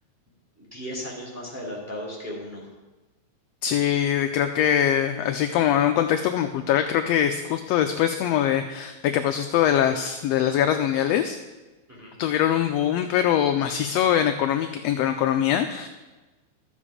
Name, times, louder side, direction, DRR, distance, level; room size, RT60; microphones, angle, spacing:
voice 1, 0.6-2.7 11.9-12.1, equal, 5° right, -4 dB, 2.4 m, -36 dB
voice 2, 3.6-11.4 12.2-15.9, left 10 dB, 80° left, 7 dB, 1.5 m, -23 dB
13.0 x 7.1 x 5.0 m, 1.2 s
omnidirectional pair, 3.4 m